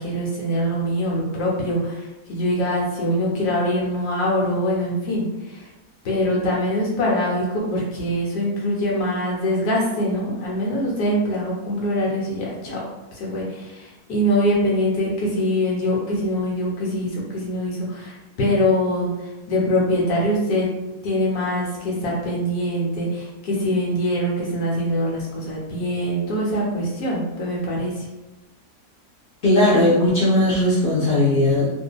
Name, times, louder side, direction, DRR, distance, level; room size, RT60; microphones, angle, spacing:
voice 1, 0.0-5.6 6.0-12.8 13.1-20.7 21.0-28.0, equal, 90° left, -4 dB, 1.4 m, -23 dB
voice 2, 29.4-31.7, left 1 dB, 50° left, -8 dB, 0.6 m, -17 dB
2.7 x 2.5 x 2.3 m, 1.0 s
omnidirectional pair, 1.6 m